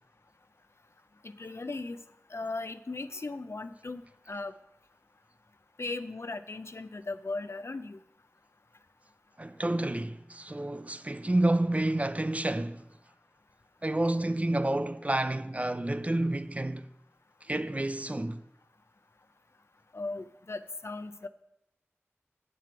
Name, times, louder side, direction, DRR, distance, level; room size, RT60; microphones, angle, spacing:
voice 1, 1.2-2.0 2.3-4.0 4.3-4.5 5.8-8.0 19.9-21.3, left 3 dB, 70° left, 0.4 m, -37 dB
voice 2, 9.4-12.8 13.8-16.9 17.4-18.4, right 1 dB, 30° right, 0.4 m, -29 dB
7.6 x 7.4 x 4.6 m
wide cardioid pair, 45°, 5 cm